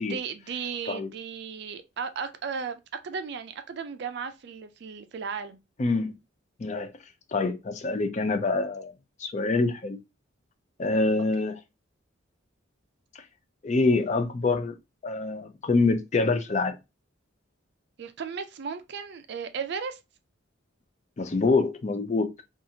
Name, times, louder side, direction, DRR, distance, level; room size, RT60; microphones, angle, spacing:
voice 1, 0.0-5.6 18.0-20.0, right 6 dB, 55° right, 0.4 m, -35 dB
voice 2, 5.8-6.1 6.6-6.9 7.3-8.9 9.2-10.0 10.8-11.5 13.6-14.7 15.0-16.8 21.2-22.3, left 3 dB, 35° left, 0.4 m, -25 dB
2.7 x 2.4 x 2.7 m
head